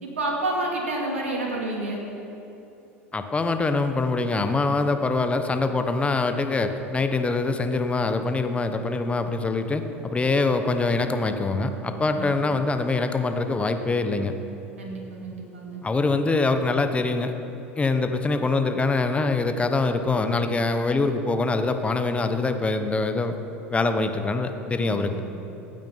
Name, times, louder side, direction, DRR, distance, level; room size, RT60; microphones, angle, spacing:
voice 1, 0.0-2.0 12.1-12.3 14.8-15.8 24.8-25.1, right 2 dB, 85° right, -1 dB, 2.5 m, -29 dB
voice 2, 3.1-14.3 15.8-17.3 17.8-23.3 23.7-25.2, left 3 dB, 20° left, 7 dB, 1.1 m, -24 dB
15.0 x 9.1 x 5.9 m, 2.9 s
hypercardioid pair, 80°, 7 cm